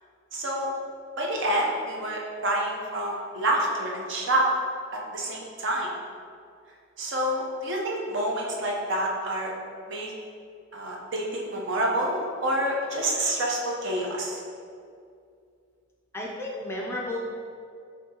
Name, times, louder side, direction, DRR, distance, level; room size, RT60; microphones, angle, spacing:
voice 1, 0.3-0.7 1.2-4.5 4.9-5.9 7.0-9.5 9.9-10.1 10.7-14.4, right 1 dB, 60° right, -2 dB, 0.7 m, -28 dB
voice 2, 16.1-17.2, left 1 dB, 10° left, -2 dB, 0.4 m, -32 dB
6.0 x 2.8 x 2.8 m, 2.4 s
head